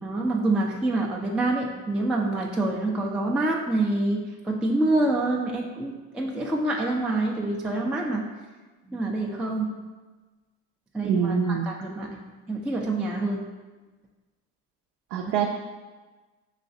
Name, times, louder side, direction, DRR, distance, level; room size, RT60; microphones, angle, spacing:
voice 1, 0.0-8.3 8.9-9.8 10.9-12.2 12.5-13.4, right 2 dB, ahead, -1 dB, 0.3 m, -26 dB
voice 2, 11.0-11.7 15.1-15.5, right 7 dB, 65° right, 1 dB, 0.5 m, -24 dB
5.6 x 3.1 x 2.6 m, 1.3 s
hypercardioid pair, 65°, 44 cm